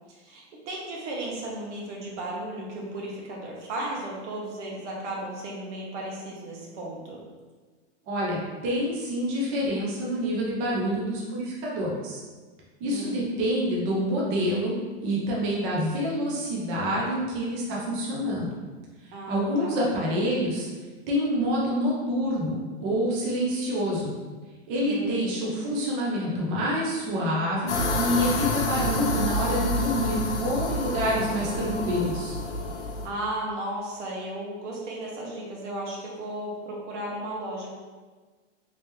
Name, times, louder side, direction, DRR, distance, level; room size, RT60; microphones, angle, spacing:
voice 1, 0.1-7.2 12.8-13.3 19.1-19.8 24.8-25.3 33.0-37.7, right 1 dB, 85° right, -2 dB, 1.2 m, -35 dB
voice 2, 8.1-12.2 12.8-14.8 15.0-18.5 19.0-20.7 21.1-24.1 24.7-32.4, equal, 20° right, -4 dB, 0.4 m, -27 dB
sound 1, 27.7-33.1, left 2 dB, 80° left, 0.8 m, -28 dB
3.2 x 2.9 x 3.3 m, 1.4 s
supercardioid pair, 160°, 35 cm